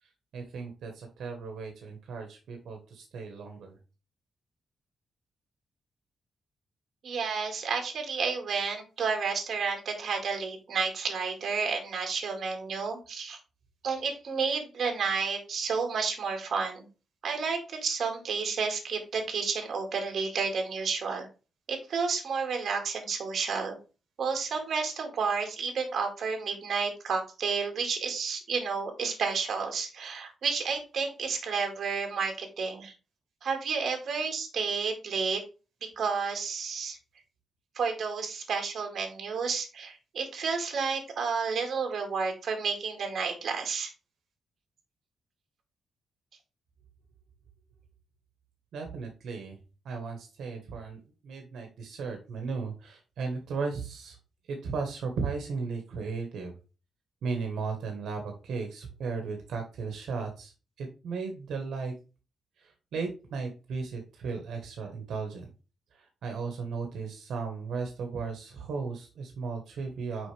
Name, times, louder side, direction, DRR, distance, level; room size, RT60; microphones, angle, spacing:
voice 1, 0.0-3.8 48.7-54.2 54.5-56.5 57.2-60.5 60.8-61.9 62.6-65.5 65.9-70.3, right 4 dB, 80° right, 4 dB, 1.4 m, -36 dB
voice 2, 7.0-13.4 13.8-16.9 17.2-21.3 21.7-23.8 24.2-32.9 33.4-35.4 36.0-37.0 37.8-43.9, right 5 dB, 50° right, 4 dB, 2.0 m, -31 dB
6.4 x 5.1 x 3.4 m, 0.32 s
wide cardioid pair, 170°, 0 cm